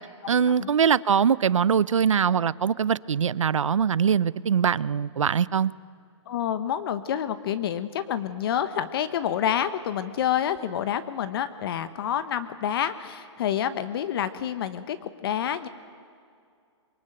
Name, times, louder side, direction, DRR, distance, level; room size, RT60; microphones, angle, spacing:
voice 1, 0.3-5.7, right 7 dB, 90° right, 20 dB, 0.7 m, -22 dB
voice 2, 6.3-15.7, left 9 dB, 50° left, 12 dB, 1.2 m, -28 dB
25.5 x 23.0 x 9.0 m, 2.3 s
hypercardioid pair, 145°, 16 cm